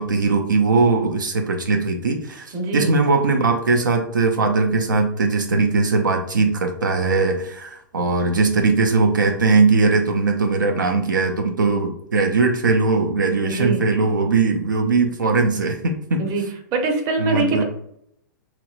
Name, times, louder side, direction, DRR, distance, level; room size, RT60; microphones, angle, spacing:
voice 1, 0.0-16.2 17.2-17.6, right 4 dB, 90° right, 3 dB, 0.4 m, -20 dB
voice 2, 2.5-2.9 13.4-13.8 16.2-16.4 16.7-17.6, right 3 dB, 40° right, 5 dB, 0.7 m, -23 dB
2.9 x 2.9 x 2.4 m, 0.72 s
hypercardioid pair, 110°, 10 cm